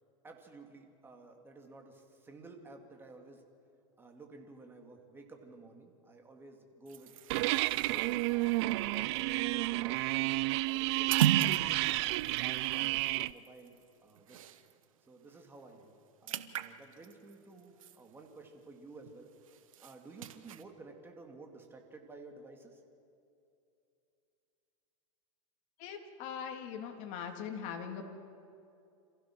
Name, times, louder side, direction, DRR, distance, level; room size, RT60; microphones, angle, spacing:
voice 1, 0.2-3.4 4.0-7.2 7.6-11.4 12.0-14.4 15.0-15.9 16.2-22.8, right 3 dB, 15° right, 3 dB, 2.5 m, -53 dB
sound 1, 6.9-14.8 15.2-15.4 15.7-18.6 19.0-20.6, right 11 dB, 85° right, 1.1 m, -38 dB
sound 2, 7.3-13.3, right 20 dB, 55° right, 0.5 m, -31 dB
voice 2, 25.8-28.1, left 7 dB, 45° left, 3 dB, 2.9 m, -41 dB
27.5 x 15.0 x 6.2 m, 2.6 s
supercardioid pair, 135°, 17 cm